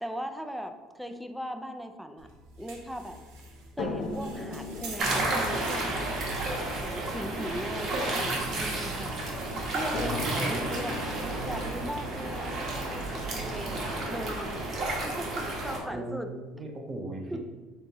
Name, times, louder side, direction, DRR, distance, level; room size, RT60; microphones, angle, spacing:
voice 1, 0.0-2.3 2.6-3.2 3.8-5.8 6.7-9.3 9.7-11.0 11.4-16.3 17.3-17.4, equal, ahead, 7 dB, 0.4 m, -38 dB
sound 1, 2.2-12.9, right 2 dB, 85° right, 1.0 m, -48 dB
sound 2, 3.8-9.0 9.9-13.9 14.9-15.0 15.4-15.5, left 3 dB, 70° left, 0.9 m, -40 dB
sound 3, 5.0-15.8, right 2 dB, 55° right, 1.2 m, -31 dB
voice 2, 15.9-17.4, right 1 dB, 30° right, 2 dB, 0.7 m, -38 dB
5.3 x 3.5 x 2.9 m, 1.2 s
cardioid pair, 125°, 0 cm